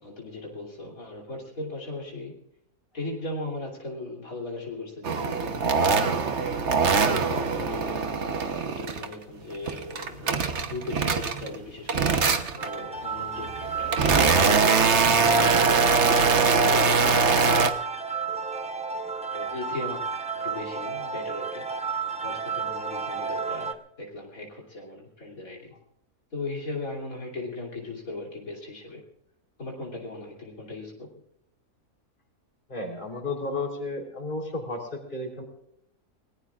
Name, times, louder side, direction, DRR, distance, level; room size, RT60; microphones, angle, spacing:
voice 1, 0.0-2.4 2.9-6.5 7.0-8.1 8.6-12.1 12.5-15.6 16.3-17.4 19.3-20.0 20.4-25.7 26.3-29.0 29.6-31.2, left 2 dB, 70° left, -2 dB, 3.5 m, -38 dB
sound 1, 5.0-9.1 9.5-11.6 11.9-12.7 13.4-17.7, right 5 dB, 55° right, 1.3 m, -22 dB
sound 2, 12.6-23.7, right 5 dB, 5° right, 0.7 m, -32 dB
voice 2, 32.7-35.4, left 2 dB, 35° left, 2 dB, 3.9 m, -33 dB
30.0 x 19.5 x 2.5 m, 0.77 s
omnidirectional pair, 1.5 m